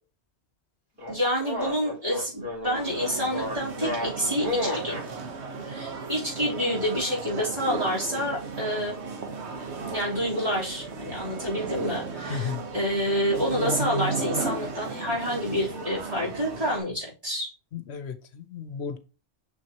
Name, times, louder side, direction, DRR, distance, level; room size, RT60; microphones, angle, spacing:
sound 1, 1.0-5.1, left 1 dB, 60° right, 4.7 m, -32 dB
voice 1, 1.1-5.0 5.6-9.0 9.9-17.5, equal, 30° right, 3.7 m, -28 dB
sound 2, 2.7-16.8, right 4 dB, 80° right, 1.4 m, -35 dB
voice 2, 12.3-12.6 17.7-19.0, left 7 dB, 75° left, 1.0 m, -34 dB
6.4 x 6.3 x 2.9 m
omnidirectional pair, 1.1 m